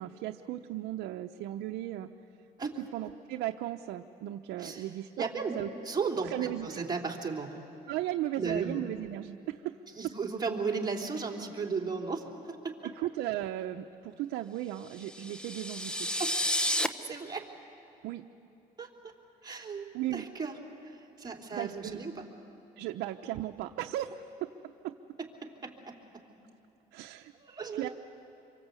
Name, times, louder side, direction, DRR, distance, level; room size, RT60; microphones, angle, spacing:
voice 1, 0.0-2.1 2.9-5.3 5.6-5.7 6.2-6.8 7.9-9.8 13.0-16.1 18.0-18.2 19.9-20.3 21.5-22.0 22.8-24.9 26.9-27.3 27.7-27.9, right 13 dB, 85° right, 4 dB, 0.8 m, -36 dB
voice 2, 5.2-5.5 5.8-7.6 8.4-8.8 9.9-12.9 16.2-16.4 17.0-17.5 18.8-18.9 19.4-19.9 20.1-22.3 25.2-25.9 27.3-27.9, right 5 dB, 25° right, 0 dB, 3.3 m, -35 dB
sound 1, 15.0-16.9, equal, 5° left, 0.9 m, -31 dB
27.0 x 23.5 x 8.3 m, 2.9 s
cardioid pair, 110°, 17 cm